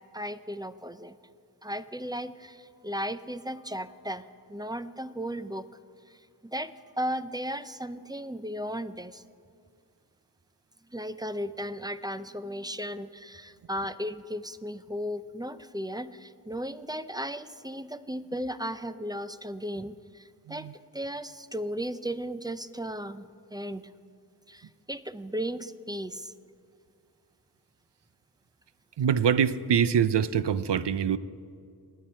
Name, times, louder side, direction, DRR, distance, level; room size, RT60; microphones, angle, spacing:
voice 1, 0.1-1.2 1.6-5.7 6.1-6.2 6.4-9.2 10.9-20.7 20.9-23.8 24.5-26.3, equal, 10° right, 12 dB, 0.4 m, -35 dB
voice 2, 29.0-31.2, right 8 dB, 80° right, 15 dB, 0.6 m, -24 dB
27.5 x 9.3 x 4.3 m, 2.3 s
wide cardioid pair, 70°, 41 cm